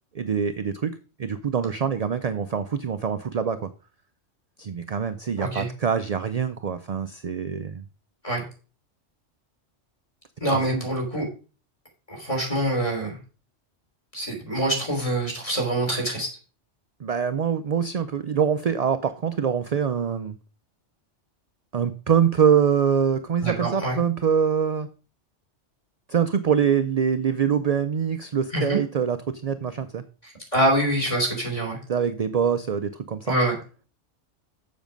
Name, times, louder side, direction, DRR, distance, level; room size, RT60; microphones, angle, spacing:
voice 1, 0.1-3.7 4.6-7.8 10.5-10.9 17.0-20.4 21.7-24.9 26.1-30.0 31.9-33.4, right 7 dB, 50° right, 10 dB, 0.4 m, -24 dB
voice 2, 10.4-11.2 12.1-13.2 14.1-16.3 23.4-24.0 28.5-28.8 30.5-31.8 33.3-33.5, right 1 dB, 25° left, -1 dB, 3.3 m, -25 dB
7.2 x 7.2 x 5.1 m, 0.36 s
omnidirectional pair, 1.2 m